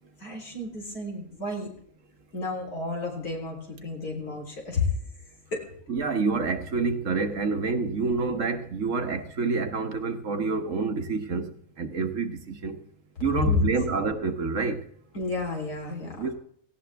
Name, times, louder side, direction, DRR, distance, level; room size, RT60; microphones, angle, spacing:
voice 1, 0.2-1.7 2.3-4.8 5.5-5.6 13.3-13.7 15.1-16.3, left 3 dB, 80° left, 4.2 m, -30 dB
voice 2, 5.9-11.5 11.8-12.8 13.2-14.8 16.1-16.3, right 4 dB, 60° right, 1.5 m, -28 dB
17.5 x 16.0 x 3.4 m
omnidirectional pair, 1.6 m